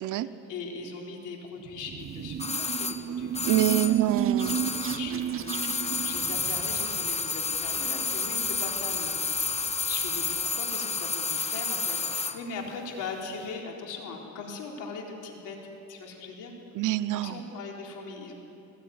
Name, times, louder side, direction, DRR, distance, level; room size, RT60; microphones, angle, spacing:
voice 1, 0.1-4.0 4.9-9.5 9.9-16.5 17.1-18.3, left 4 dB, 90° left, 0 dB, 4.0 m, -40 dB
sound 1, 1.6-7.1, right 9 dB, 45° right, 0.6 m, -32 dB
sound 2, 2.4-5.2 5.4-12.4 12.7-12.8, left 4 dB, 20° left, 1.2 m, -30 dB
voice 2, 3.4-4.6 16.7-17.4, right 14 dB, 85° right, 14 dB, 0.9 m, -26 dB
sound 3, 4.8-10.4, left 2 dB, 60° left, 7.8 m, -55 dB
20.0 x 20.0 x 9.5 m, 2.9 s
cardioid pair, 90°, 30 cm